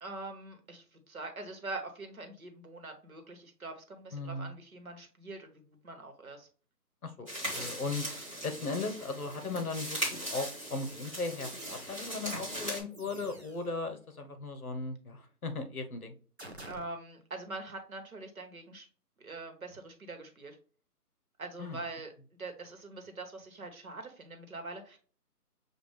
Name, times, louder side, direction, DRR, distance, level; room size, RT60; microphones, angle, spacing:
voice 1, 0.0-6.5 16.6-18.9 19.2-20.6 21.4-22.1 22.4-25.0, right 2 dB, 60° right, 4 dB, 1.2 m, -43 dB
voice 2, 4.1-4.5 7.0-8.0 8.4-16.1 21.6-21.8, left 3 dB, 65° left, 6 dB, 1.0 m, -37 dB
sound 1, 7.3-12.8, right 1 dB, 20° right, 1.4 m, -39 dB
sound 2, 11.4-12.3 12.9-13.8 16.4-16.8, right 1 dB, 45° right, 0.5 m, -50 dB
6.6 x 2.4 x 3.2 m, 0.41 s
hypercardioid pair, 180°, 48 cm